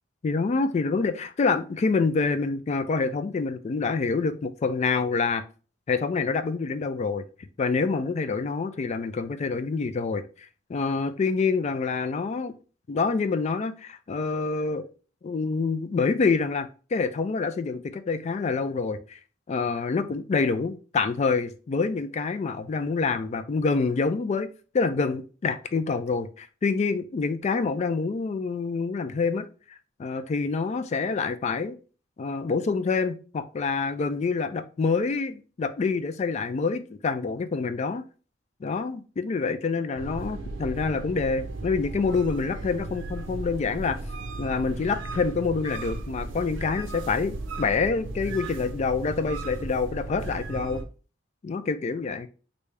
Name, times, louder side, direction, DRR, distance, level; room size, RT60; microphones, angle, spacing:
voice 1, 0.2-5.4 5.9-7.3 7.6-10.3 10.7-12.5 12.9-14.9 15.2-19.2 19.5-24.5 24.7-29.5 30.0-31.8 32.2-38.0 38.6-44.0 44.4-50.8 51.4-52.3, left 4 dB, 35° left, 0.3 m, -27 dB
sound 1, 40.0-50.8, right 2 dB, 75° right, 0.5 m, -36 dB
3.3 x 2.6 x 3.3 m
head